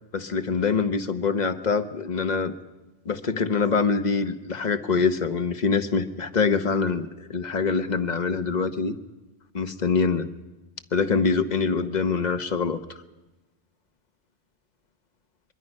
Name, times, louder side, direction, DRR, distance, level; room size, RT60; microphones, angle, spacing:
voice 1, 0.1-2.5 3.1-9.0 9.5-10.3 10.9-12.8, left 5 dB, 40° left, 9 dB, 1.0 m, -24 dB
23.0 x 23.0 x 5.3 m, 1.0 s
omnidirectional pair, 1.2 m